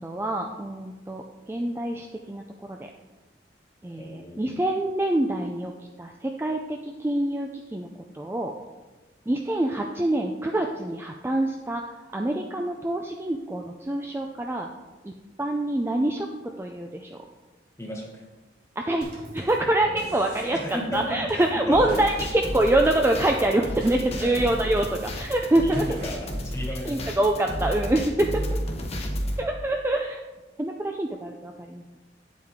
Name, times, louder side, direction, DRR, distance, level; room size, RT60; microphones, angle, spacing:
voice 1, 0.0-2.8 3.8-5.7 6.0-7.9 8.1-8.5 9.3-11.8 12.1-14.7 15.0-15.1 15.4-16.3 16.6-17.2 18.8-19.1 19.3-25.8 26.8-28.3 29.4-30.2 30.6-31.8, right 1 dB, 15° right, 2 dB, 0.4 m, -25 dB
voice 2, 4.0-4.6 17.8-18.2 19.8-20.1 20.4-22.3 24.2-24.4 25.6-27.4 28.3-28.7, equal, 15° left, 0 dB, 1.6 m, -35 dB
Drum kit / Snare drum / Bass drum, 19.0-26.7, right 1 dB, 50° right, 2.8 m, -44 dB
sound 1, 21.7-29.4, equal, 35° left, 1.0 m, -32 dB
9.0 x 7.6 x 3.7 m, 1.2 s
head